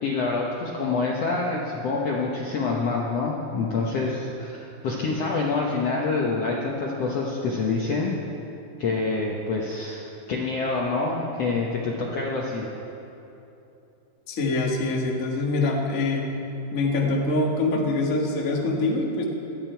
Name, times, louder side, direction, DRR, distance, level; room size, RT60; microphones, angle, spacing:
voice 1, 0.0-4.6 4.8-8.1 8.8-12.7, left 3 dB, 70° left, -2 dB, 1.5 m, -26 dB
voice 2, 14.3-16.2 16.7-19.2, left 2 dB, 50° left, -1 dB, 0.9 m, -24 dB
18.5 x 13.5 x 4.6 m, 2.9 s
omnidirectional pair, 4.4 m